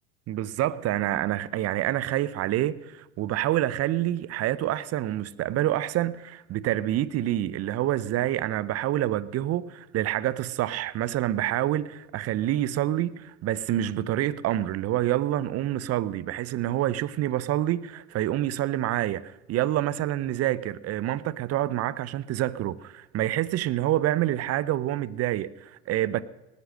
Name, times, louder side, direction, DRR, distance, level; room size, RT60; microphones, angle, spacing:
voice 1, 0.3-26.2, right 13 dB, 50° right, 0.8 m, -27 dB
19.0 x 8.2 x 6.6 m
hypercardioid pair, 80°, 32 cm